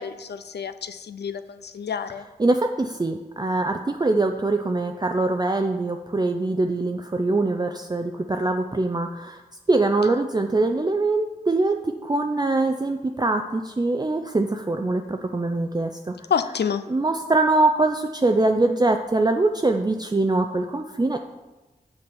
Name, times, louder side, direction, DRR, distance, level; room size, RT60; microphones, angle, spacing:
voice 1, 0.0-2.2 16.3-16.8, left 7 dB, 85° left, 11 dB, 0.5 m, -28 dB
voice 2, 2.4-9.4 9.7-16.1 16.9-21.3, right 2 dB, 25° right, 5 dB, 0.5 m, -23 dB
6.7 x 6.0 x 5.4 m, 1.1 s
cardioid pair, 40°, 17 cm